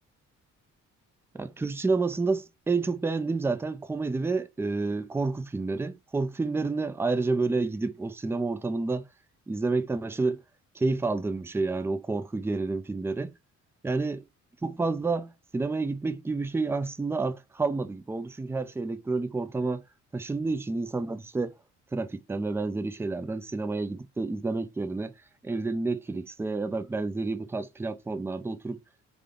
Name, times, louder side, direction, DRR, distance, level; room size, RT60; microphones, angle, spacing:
voice 1, 1.3-9.1 9.5-10.4 10.7-13.3 13.8-14.2 14.6-19.8 20.1-21.5 21.9-25.1 25.4-28.8, right 3 dB, 10° right, 0.4 m, -29 dB
3.5 x 2.3 x 3.7 m
cardioid pair, 90°, 30 cm